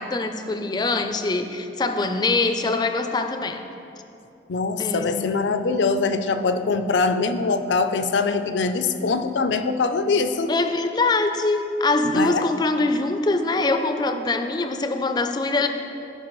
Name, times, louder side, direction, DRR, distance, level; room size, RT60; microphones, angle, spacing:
voice 1, 0.0-3.6 4.8-5.4 10.5-15.7, left 3 dB, 25° left, 7 dB, 0.4 m, -23 dB
voice 2, 4.5-10.5 12.1-12.4, left 4 dB, 80° left, 9 dB, 0.5 m, -23 dB
15.0 x 5.2 x 3.1 m, 2.7 s
head